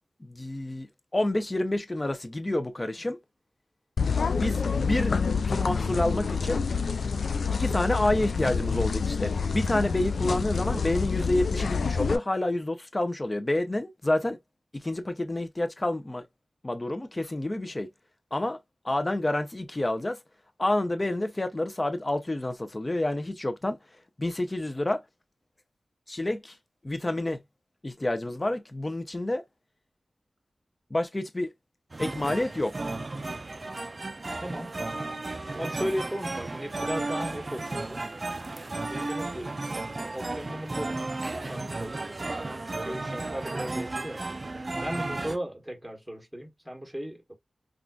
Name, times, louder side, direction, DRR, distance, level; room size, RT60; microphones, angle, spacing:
voice 1, 0.2-3.2 4.4-5.2 5.5-6.6 7.5-14.4 14.7-16.3 16.6-17.9 18.3-18.6 18.8-20.2 20.6-23.8 24.2-25.0 26.1-26.6 26.8-27.4 27.8-29.4 30.9-31.5 32.0-32.9, left 1 dB, 25° left, 0.5 m, -28 dB
sound 1, 4.0-12.2, left 5 dB, 80° left, 0.3 m, -27 dB
sound 2, 31.9-45.4, right 2 dB, 40° right, 0.4 m, -34 dB
voice 2, 34.4-34.8 35.6-38.0 38.9-39.6 40.1-41.0 41.4-42.3 42.6-44.2 44.8-47.3, equal, ahead, 1.1 m, -36 dB
3.7 x 2.4 x 2.2 m
wide cardioid pair, 90°, 0 cm